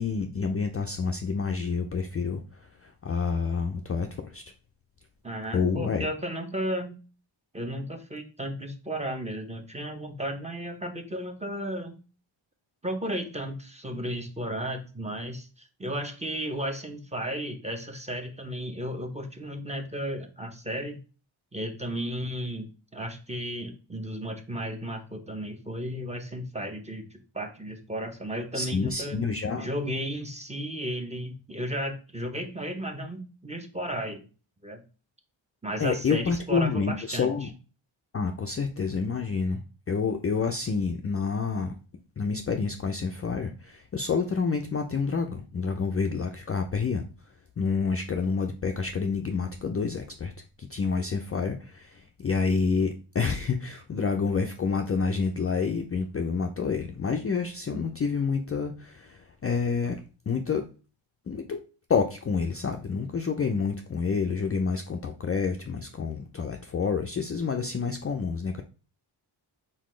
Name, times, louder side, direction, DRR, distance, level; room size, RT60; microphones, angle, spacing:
voice 1, 0.0-4.4 5.5-6.1 28.5-29.7 35.8-37.5 38.1-41.8 42.2-47.0 47.6-50.3 50.6-60.7 61.3-61.6 61.9-68.6, left 5 dB, 30° left, 4 dB, 0.4 m, -28 dB
voice 2, 5.2-7.0 7.5-12.0 12.8-21.0 21.5-29.2 29.6-34.3 34.6-34.8 35.6-37.3, equal, 15° right, 5 dB, 0.8 m, -34 dB
4.1 x 4.1 x 3.1 m, 0.35 s
wide cardioid pair, 90°, 48 cm